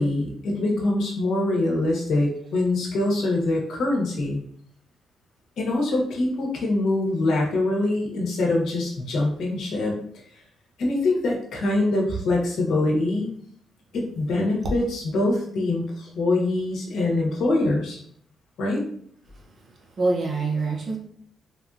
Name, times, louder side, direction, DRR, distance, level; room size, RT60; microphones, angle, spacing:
voice 1, 0.0-4.4 5.6-10.0 10.8-13.3 13.9-18.0 18.6-18.8, left 2 dB, 70° left, -1 dB, 1.0 m, -24 dB
voice 2, 19.3-21.0, right 3 dB, 35° right, -1 dB, 0.6 m, -27 dB
3.5 x 2.6 x 2.4 m, 0.63 s
cardioid pair, 170°, 0 cm